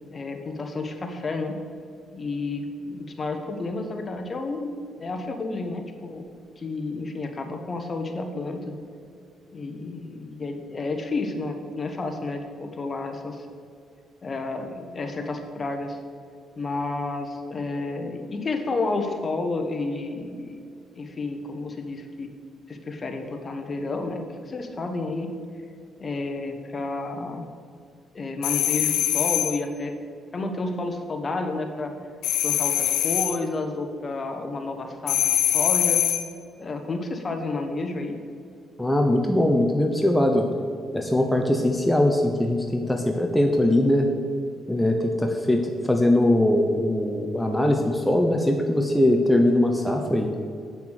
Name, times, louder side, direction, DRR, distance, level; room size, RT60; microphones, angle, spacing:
voice 1, 0.1-1.6 2.1-6.2 6.6-8.7 9.5-13.5 14.2-16.0 16.6-20.6 20.9-22.3 22.7-25.3 26.0-27.4 28.1-29.9 30.3-31.9 32.4-36.0 36.6-38.2, left 3 dB, 35° left, 5 dB, 1.3 m, -31 dB
sound 1, 28.4-29.6 32.2-33.4 35.1-36.3, left 12 dB, 90° left, 0.6 m, -23 dB
voice 2, 38.8-40.5 40.9-44.1 44.7-50.3, left 1 dB, 5° left, 2 dB, 0.9 m, -21 dB
8.2 x 6.9 x 6.4 m, 2.4 s
cardioid pair, 90°, 0 cm